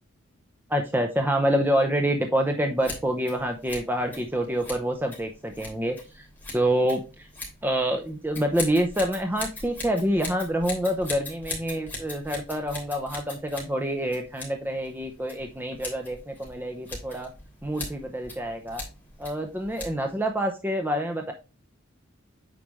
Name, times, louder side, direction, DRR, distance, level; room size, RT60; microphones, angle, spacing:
voice 1, 0.7-6.3 6.5-7.0 7.6-17.3 17.6-18.8 19.2-21.3, right 1 dB, 10° right, 4 dB, 0.7 m, -27 dB
Scissors, 2.8-20.3, left 2 dB, 10° left, 3.2 m, -41 dB
8.7 x 5.0 x 3.1 m, 0.31 s
head